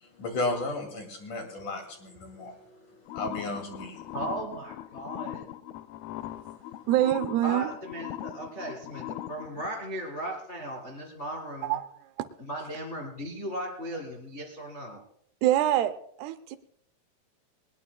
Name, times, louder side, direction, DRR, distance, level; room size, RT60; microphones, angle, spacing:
voice 1, 0.0-4.2 6.3-6.7, left 2 dB, 55° left, 3 dB, 3.6 m, -35 dB
sound 1, 3.1-9.7, left 13 dB, 80° left, 2.4 m, -40 dB
voice 2, 4.1-5.5 7.4-11.8 12.4-15.0, right 1 dB, 30° left, 0 dB, 1.5 m, -37 dB
voice 3, 6.9-7.7 11.6-11.8 12.2-12.3 15.4-15.9 16.2-16.6, right 13 dB, 80° right, 10 dB, 2.6 m, -24 dB
20.5 x 20.0 x 2.3 m, 0.70 s
omnidirectional pair, 4.8 m